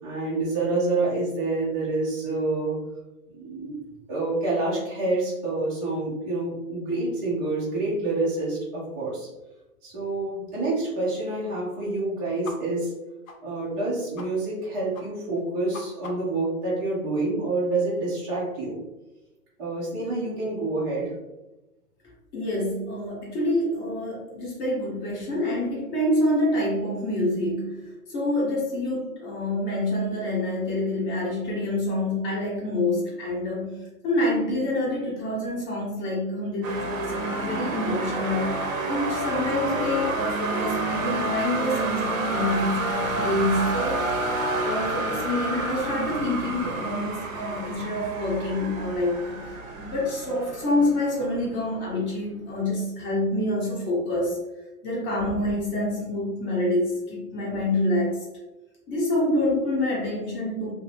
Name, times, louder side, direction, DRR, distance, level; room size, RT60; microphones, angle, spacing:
voice 1, 0.0-2.8 3.3-3.8 4.1-9.3 9.8-12.9 13.4-18.8 19.6-21.1, right 2 dB, 15° right, -9 dB, 0.4 m, -27 dB
sound 1, 12.4-12.6 12.8-12.9 13.3-13.4 13.7-13.8 14.2-14.3 14.5-14.7 14.9-15.1 15.4-16.4, left 4 dB, 65° left, 0.8 m, -41 dB
voice 2, 22.3-33.8 34.0-44.0 44.6-54.4 54.8-58.2 58.9-60.7, left 1 dB, 25° left, -3 dB, 0.7 m, -27 dB
sound 2, 36.6-51.5, right 2 dB, 60° right, 0.7 m, -29 dB
2.5 x 2.5 x 3.2 m, 1.0 s
hypercardioid pair, 130°, 45 cm